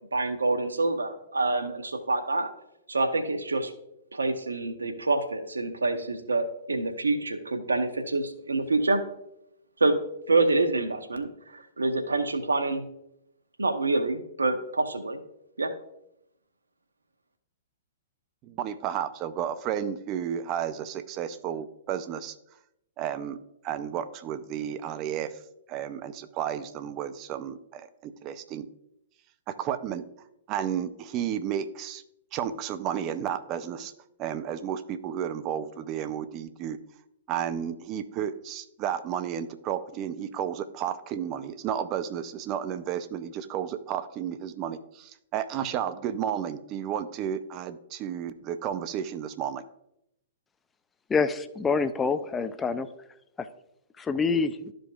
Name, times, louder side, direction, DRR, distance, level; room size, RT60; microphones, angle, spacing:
voice 1, 0.1-2.5 2.9-3.7 4.1-9.0 9.8-9.9 10.3-12.8 13.6-15.2 15.6-15.7, right 2 dB, 85° right, 8 dB, 0.8 m, -26 dB
voice 2, 18.4-22.4 23.0-23.4 23.6-25.3 25.7-28.7 29.5-30.0 30.5-32.0 32.3-33.9 34.2-36.8 37.3-49.6, right 9 dB, 35° right, 12 dB, 0.6 m, -32 dB
voice 3, 51.1-52.9 54.0-54.6, left 5 dB, 15° left, 11 dB, 0.5 m, -26 dB
12.5 x 5.1 x 2.4 m, 0.80 s
figure-of-eight pair, 115°, 0 cm